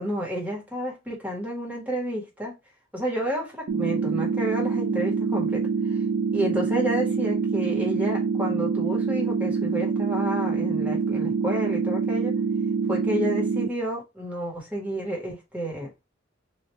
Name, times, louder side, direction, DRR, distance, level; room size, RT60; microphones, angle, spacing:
voice 1, 0.0-2.5 2.9-5.6 5.9-6.0 6.3-12.4 12.9-15.9, equal, 10° right, 1.3 m, -30 dB
sound 1, 3.7-13.7, right 5 dB, 85° right, 0.4 m, -25 dB
3.1 x 2.6 x 3.3 m
head